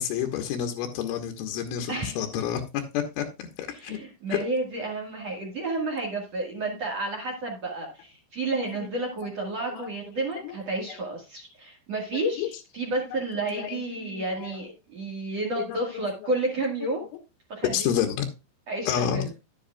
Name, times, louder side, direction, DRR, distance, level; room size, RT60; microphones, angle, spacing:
voice 1, 0.0-4.0 4.3-4.4 8.8-8.9 9.7-9.9 10.4-10.6 12.4-12.5 13.1-13.2 13.6-14.6 15.6-15.8 17.7-18.3 18.9-19.3, left 9 dB, 85° left, 3 dB, 3.6 m, -29 dB
voice 2, 3.7-17.0 17.5-17.9 18.7-19.4, right 2 dB, 55° right, -1 dB, 1.9 m, -31 dB
11.0 x 10.0 x 2.4 m, 0.28 s
omnidirectional pair, 5.6 m